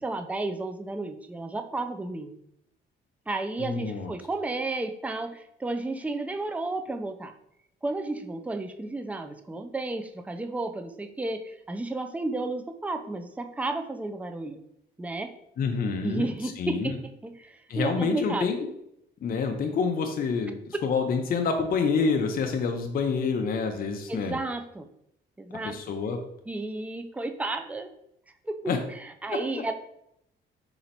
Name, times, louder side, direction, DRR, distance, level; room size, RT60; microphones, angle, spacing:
voice 1, 0.0-2.4 3.3-7.3 7.8-14.6 15.0-15.3 16.0-18.5 20.7-20.8 24.1-24.9 25.4-25.8 26.5-27.9 28.4-29.7, right 2 dB, 5° right, 7 dB, 0.4 m, -32 dB
voice 2, 3.6-4.1 15.6-16.3 16.6-17.0 17.7-18.7 19.2-24.4 25.6-26.2 28.7-28.8 29.3-29.4, left 5 dB, 45° left, 4 dB, 0.5 m, -27 dB
4.2 x 2.9 x 4.0 m, 0.79 s
cardioid pair, 90°, 20 cm